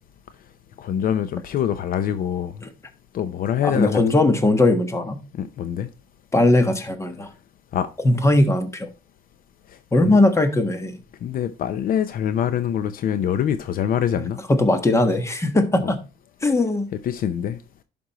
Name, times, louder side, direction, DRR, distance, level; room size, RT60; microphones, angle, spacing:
voice 1, 0.8-2.5 3.1-4.0 5.3-5.9 7.7-7.9 10.0-10.2 11.2-14.4 15.8-15.9 17.0-17.6, left 9 dB, 55° left, 0.6 m, -24 dB
voice 2, 3.6-5.2 6.3-7.3 8.0-8.9 9.9-10.9 14.5-16.0 16.4-16.9, left 2 dB, 15° left, 1.4 m, -19 dB
11.0 x 5.3 x 3.0 m
cardioid pair, 110°, 17 cm